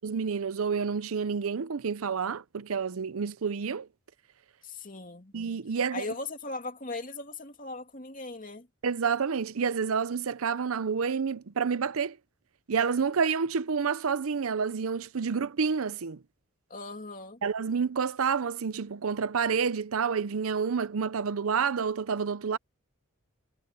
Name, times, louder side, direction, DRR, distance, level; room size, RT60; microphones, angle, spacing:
voice 1, 0.0-3.9 5.3-6.1 8.8-12.2 12.7-16.2 17.4-22.6, right 6 dB, 80° right, 0.6 m, -29 dB
voice 2, 4.6-5.3 5.9-8.7 16.7-17.4, left 3 dB, 40° left, 2.8 m, -39 dB
head